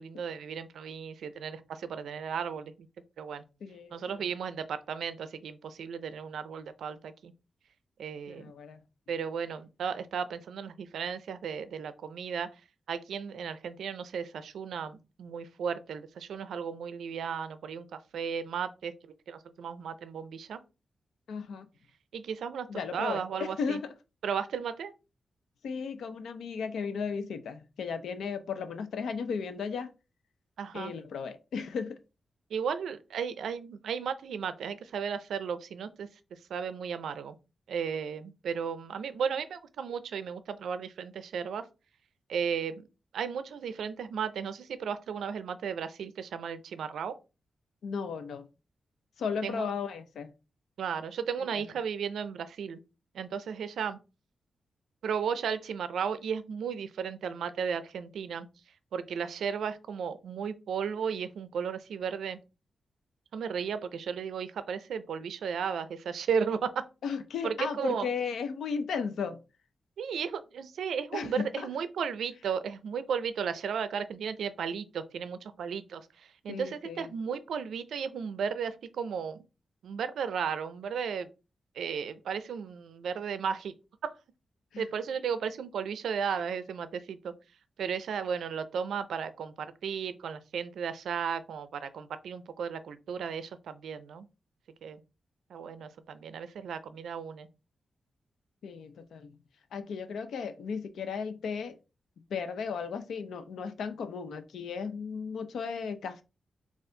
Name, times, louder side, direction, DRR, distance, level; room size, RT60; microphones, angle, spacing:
voice 1, 0.0-2.7 3.2-3.4 3.9-7.3 8.0-8.5 9.1-12.5 12.9-20.6 22.1-22.7 22.9-23.8 24.2-24.9 30.6-30.9 32.5-37.4 37.7-41.6 42.3-42.8 43.1-47.2 49.4-49.7 50.8-52.8 53.1-54.0 55.0-58.5 58.9-62.4 63.3-66.8 67.4-68.1 70.0-79.5 79.8-81.3 81.7-83.8 84.0-84.1 84.8-87.3 87.8-94.3 94.8-95.0 95.5-97.5, right 7 dB, 90° right, 0.4 m, -35 dB
voice 2, 3.6-4.2 8.3-8.8 21.3-21.7 22.7-23.9 25.6-29.9 30.7-32.0 47.8-48.5 49.2-50.3 67.0-69.4 71.1-71.7 76.5-77.1 84.7-84.8 98.6-99.3 99.7-101.8 102.3-106.2, left 6 dB, 85° left, 0.5 m, -35 dB
4.2 x 2.4 x 3.7 m
cardioid pair, 65°, 0 cm